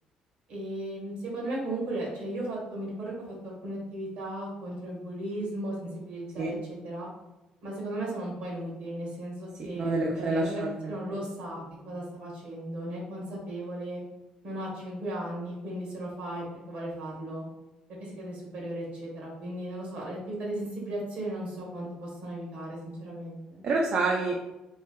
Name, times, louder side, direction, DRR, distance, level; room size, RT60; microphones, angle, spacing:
voice 1, 0.5-7.1 7.6-14.0 14.4-17.5 18.0-23.6, right 1 dB, 75° right, -3 dB, 1.4 m, -36 dB
voice 2, 9.6-11.0 23.6-24.4, right 2 dB, 55° right, 0 dB, 0.4 m, -28 dB
3.3 x 2.6 x 2.3 m, 0.99 s
cardioid pair, 85°, 2 cm